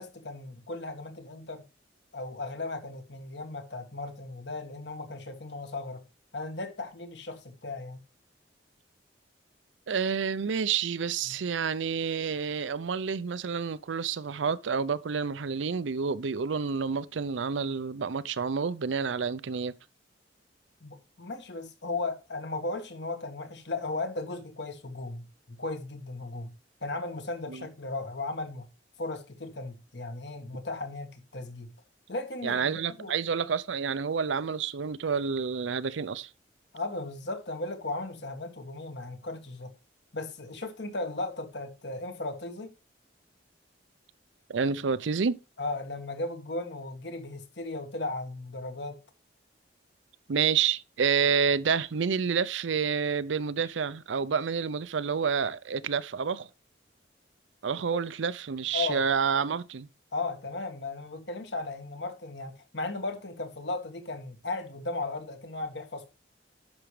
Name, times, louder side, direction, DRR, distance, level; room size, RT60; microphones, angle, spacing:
voice 1, 0.0-1.6 2.1-6.0 6.3-8.0 11.3-11.4 20.8-26.5 26.8-28.6 29.0-31.7 32.1-33.1 36.7-39.7 40.1-42.7 45.6-49.0 58.7-59.0 60.1-66.1, left 2 dB, 70° left, 1.6 m, -36 dB
voice 2, 9.9-19.7 27.5-27.7 32.4-36.3 44.5-45.4 50.3-56.5 57.6-59.9, right 6 dB, 90° right, 0.5 m, -29 dB
10.5 x 6.3 x 3.2 m
head